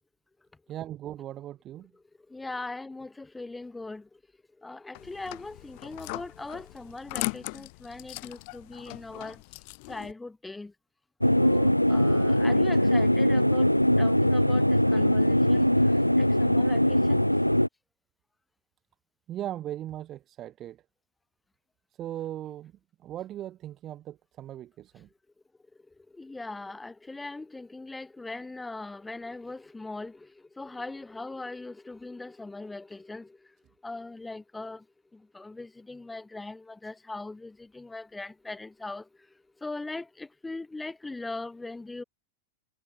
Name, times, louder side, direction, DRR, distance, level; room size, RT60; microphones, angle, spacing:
voice 1, 0.7-1.9 19.3-20.8 22.0-22.7 23.0-25.1, right 12 dB, 30° right, 6.6 m, -38 dB
voice 2, 2.3-4.0 4.6-9.4 9.9-10.7 11.4-13.7 14.0-15.7 16.2-17.2 26.2-30.3 30.6-33.3 33.8-34.8 35.3-39.0 39.6-42.0, left 2 dB, 10° left, 3.9 m, -40 dB
sound 1, 4.9-10.1, left 30 dB, 45° left, 3.9 m, -39 dB
sound 2, 11.2-17.7, equal, 90° left, 2.1 m, -22 dB
figure-of-eight pair, 90°, 0 cm